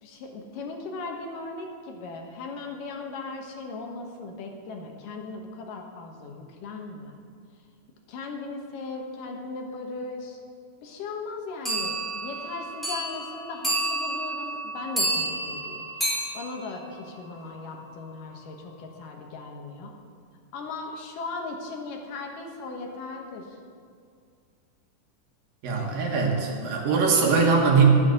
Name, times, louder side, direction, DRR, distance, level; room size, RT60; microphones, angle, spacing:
voice 1, 0.0-7.2 8.1-10.4 10.8-19.9 20.5-23.6, left 3 dB, 80° left, 2 dB, 3.0 m, -38 dB
sound 1, 11.7-17.6, right 1 dB, ahead, 3.5 m, -30 dB
voice 2, 25.6-27.9, right 5 dB, 90° right, 0 dB, 3.5 m, -21 dB
12.0 x 8.3 x 7.8 m, 2.2 s
omnidirectional pair, 3.8 m